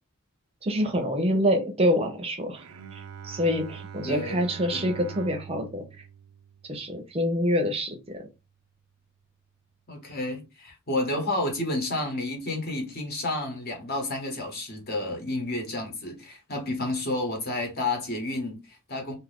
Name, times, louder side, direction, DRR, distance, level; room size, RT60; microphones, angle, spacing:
voice 1, 0.6-2.6 2.9-5.8 6.7-8.3, equal, 25° right, 0.6 m, -26 dB
Bowed string instrument, 2.5-7.8, right 7 dB, 90° right, 0.4 m, -44 dB
voice 2, 4.0-4.4 4.7-4.9 9.9-19.1, left 2 dB, 45° left, 1.1 m, -30 dB
2.7 x 2.5 x 3.4 m
head